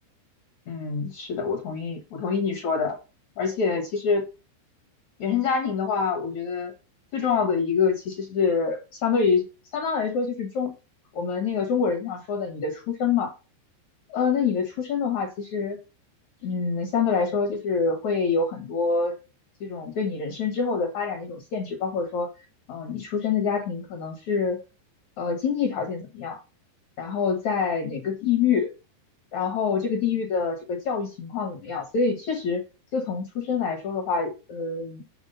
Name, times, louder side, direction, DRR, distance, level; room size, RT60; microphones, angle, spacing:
voice 1, 0.7-3.0 3.4-4.2 5.2-6.7 7.1-10.7 11.1-13.3 14.1-15.8 16.4-19.2 19.6-22.3 22.7-24.6 25.2-26.4 27.0-28.7 29.3-32.6 32.9-35.1, left 5 dB, 65° left, 5 dB, 1.8 m, -26 dB
8.1 x 4.7 x 6.8 m, 0.31 s
omnidirectional pair, 5.2 m